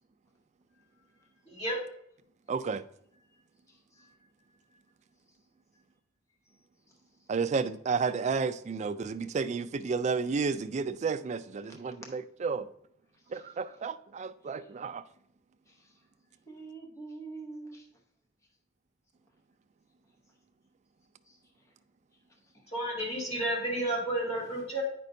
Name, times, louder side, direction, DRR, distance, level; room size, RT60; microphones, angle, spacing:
voice 1, 1.5-1.8 22.7-24.8, right 1 dB, 30° left, -5 dB, 2.6 m, -31 dB
voice 2, 2.5-2.8 7.3-12.7 13.3-15.0, right 5 dB, 35° right, 12 dB, 0.3 m, -31 dB
voice 3, 3.7-4.2 13.3-13.6 14.6-14.7 15.7-15.9 16.5-17.9 21.3-21.4, right 3 dB, 15° left, 1 dB, 0.8 m, -46 dB
9.0 x 5.4 x 2.6 m, 0.70 s
head